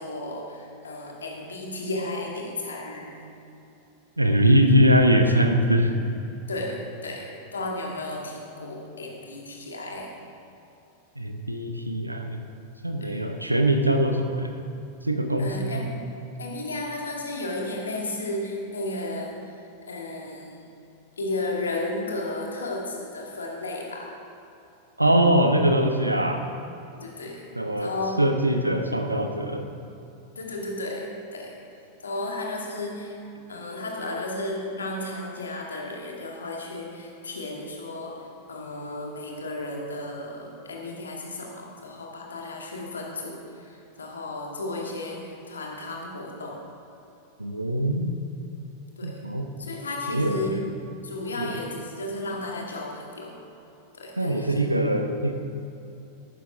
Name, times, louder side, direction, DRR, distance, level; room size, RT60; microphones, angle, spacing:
voice 1, 0.0-3.1 6.5-10.2 13.0-13.3 15.4-16.1 16.4-19.5 19.9-20.7 21.2-24.2 26.9-28.2 30.4-31.6 32.0-33.2 33.5-46.6 49.0-49.2 49.6-50.6 51.0-53.4 53.9-54.6, left 2 dB, 70° left, 0 dB, 2.0 m, -34 dB
voice 2, 4.2-5.9 11.2-12.4 12.8-14.5 15.0-15.9 25.0-26.4 27.6-27.9 28.2-29.7 47.4-48.1 49.0-49.5 50.1-50.6 51.4-51.5 54.2-55.3, right 1 dB, 85° right, 5 dB, 0.9 m, -22 dB
14.0 x 12.0 x 3.5 m, 2.9 s
figure-of-eight pair, 90°, 0 cm